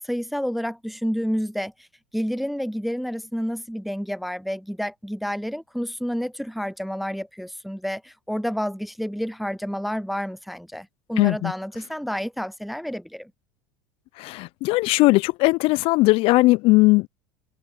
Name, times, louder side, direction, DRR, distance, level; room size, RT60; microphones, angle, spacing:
voice 1, 0.0-1.7 2.1-13.3, equal, ahead, 0.5 m, -29 dB
voice 2, 11.2-11.5 14.2-17.1, left 22 dB, 55° left, 0.4 m, -18 dB
hypercardioid pair, 85°, 11 cm